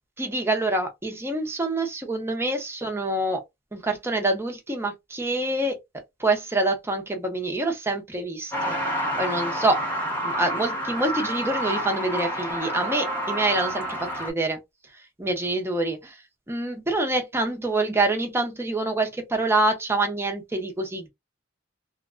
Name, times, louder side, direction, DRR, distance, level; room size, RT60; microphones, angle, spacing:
voice 1, 0.2-3.4 3.7-5.8 6.2-9.8 10.2-14.6 15.2-16.2 16.5-21.1, right 2 dB, 15° right, 0.7 m, -26 dB
Truck, 8.5-14.3, equal, 10° left, 1.0 m, -29 dB
2.8 x 2.2 x 2.4 m
head